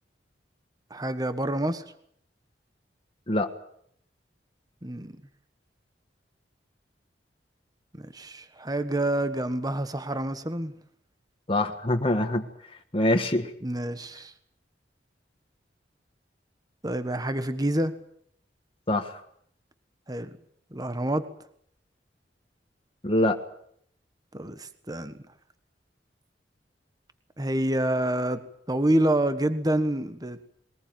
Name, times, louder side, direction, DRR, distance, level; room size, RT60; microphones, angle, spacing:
voice 1, 0.9-1.8 4.8-5.2 8.0-10.7 13.6-14.3 16.8-17.9 20.1-20.3 20.7-21.2 24.3-25.2 27.4-28.4 28.7-30.4, right 1 dB, 20° right, 11 dB, 1.4 m, -27 dB
voice 2, 11.5-12.5 12.9-13.5 18.9-19.2 23.0-23.4, left 1 dB, 30° left, 4 dB, 1.5 m, -24 dB
22.0 x 19.5 x 9.3 m, 0.68 s
head